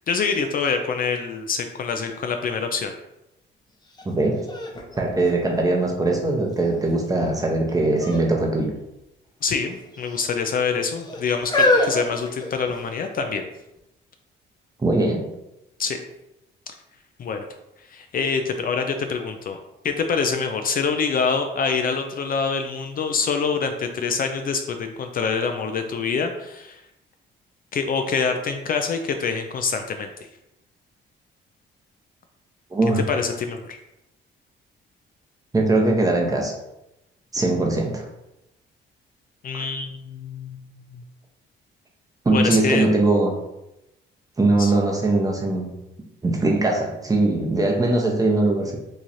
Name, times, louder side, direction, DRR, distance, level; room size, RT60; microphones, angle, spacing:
voice 1, 0.1-2.9 9.4-13.5 15.8-16.0 17.2-17.5 17.9-19.6 19.8-26.8 27.7-30.1 33.1-33.8 39.4-40.6 40.9-41.0 42.3-42.9 44.6-44.7, left 5 dB, 45° left, 5 dB, 0.4 m, -25 dB
sound 1, 3.9-4.0 4.5-6.0 6.6-7.1 7.9-8.3 8.6-8.7 9.6-10.3 11.0-13.0 13.8-13.9, left 2 dB, 20° left, 0.7 m, -25 dB
voice 2, 4.0-4.5 5.0-8.7 14.8-15.2 32.7-33.0 35.5-36.5 37.3-38.1 39.5-39.6 42.2-43.4 44.4-45.7 46.2-48.8, right 2 dB, 20° right, 0 dB, 0.8 m, -21 dB
3.1 x 2.4 x 4.1 m, 0.90 s
cardioid pair, 90°, 20 cm